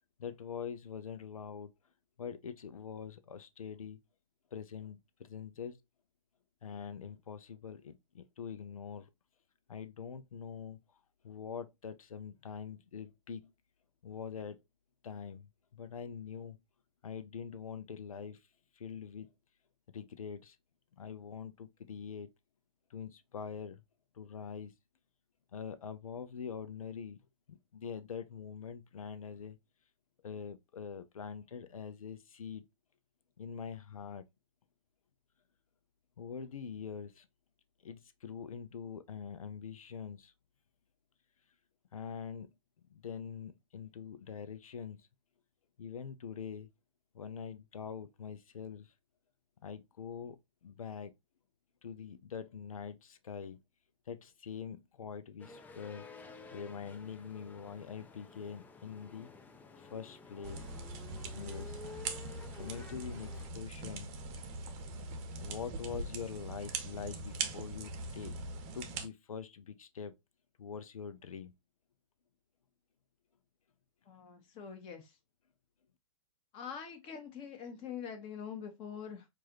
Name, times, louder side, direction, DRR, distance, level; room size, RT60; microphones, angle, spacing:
voice 1, 0.2-1.7 2.2-4.0 4.5-5.8 6.6-9.1 9.7-10.8 11.2-13.5 14.0-14.6 15.0-16.6 17.0-18.5 18.7-19.3 19.9-20.6 20.9-22.3 22.9-23.8 24.1-24.7 25.5-27.2 27.5-29.6 30.2-32.6 33.4-34.3 36.2-37.3 37.8-40.3 41.9-42.5 42.9-45.1 45.8-46.7 47.1-48.9 49.6-51.1 51.8-53.6 54.1-56.1 56.5-59.3 59.8-60.6 61.3-62.2 62.5-64.2 65.4-68.3 68.7-70.1 70.6-71.5, left 7 dB, 85° left, 0.6 m, -44 dB
sound 1, 55.4-63.5, left 4 dB, 10° left, 0.4 m, -52 dB
sound 2, 60.4-69.1, right 3 dB, 35° right, 0.8 m, -41 dB
voice 2, 74.0-75.2 76.5-79.3, left 7 dB, 30° left, 1.3 m, -44 dB
4.6 x 2.5 x 2.9 m
hypercardioid pair, 125°, 17 cm